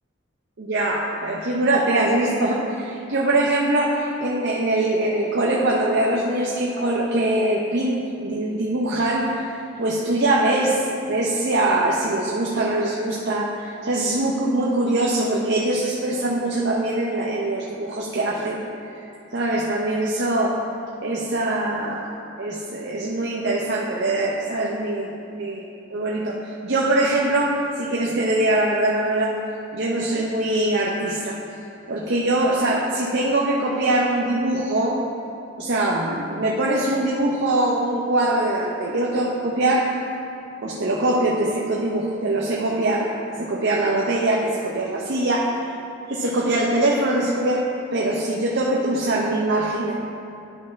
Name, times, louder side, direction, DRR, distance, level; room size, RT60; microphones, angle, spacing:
voice 1, 0.6-9.5 9.8-18.6 19.0-19.1 19.3-20.6 21.0-22.1 22.4-25.6 25.9-29.4 29.7-31.4 31.9-35.0 35.6-40.0 40.6-45.7 46.1-49.9, right 1 dB, 60° right, -3 dB, 0.7 m, -23 dB
11.0 x 5.7 x 3.2 m, 2.7 s
head